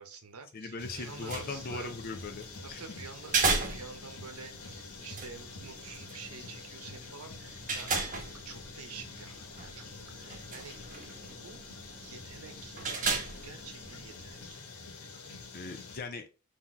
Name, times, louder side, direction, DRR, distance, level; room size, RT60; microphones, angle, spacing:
voice 1, 0.0-1.9 2.6-8.1 8.4-9.9 10.1-10.8 11.2-11.7 11.9-12.8 13.3-14.6, right 5 dB, 80° right, 7 dB, 0.8 m, -48 dB
voice 2, 0.5-2.8 15.5-16.3, left 3 dB, 45° left, 7 dB, 0.5 m, -39 dB
sound 1, 0.8-16.0, left 3 dB, 90° left, 1.2 m, -47 dB
sound 2, 1.0-14.5, right 4 dB, 35° right, 0.9 m, -37 dB
4.0 x 2.8 x 4.3 m, 0.32 s
head